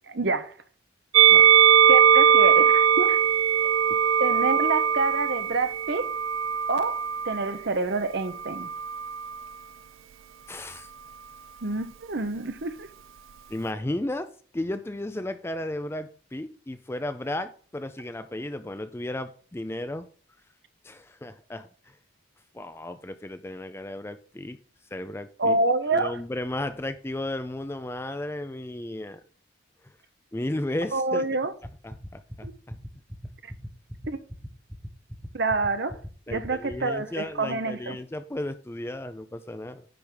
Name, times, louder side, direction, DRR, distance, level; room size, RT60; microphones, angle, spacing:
voice 1, 0.1-0.5 1.9-3.2 3.6-3.7 4.2-6.1 6.7-8.7 11.6-12.9 25.4-26.2 30.9-31.5 32.4-32.5 33.4-33.5 34.1-34.2 35.3-36.0 36.3-38.0, right 3 dB, 55° right, 0.8 m, -27 dB
Musical instrument, 1.1-7.5 8.4-9.4, right 8 dB, 75° right, 0.3 m, -20 dB
voice 2, 10.5-10.9 13.5-14.3 14.5-20.1 20.8-22.0 22.5-24.6 24.9-25.6 25.9-29.2 30.3-31.2 31.8-32.8 36.3-39.9, left 1 dB, 10° left, 0.4 m, -34 dB
sound 1, 31.6-36.7, equal, 5° right, 0.8 m, -38 dB
10.0 x 3.6 x 6.2 m
head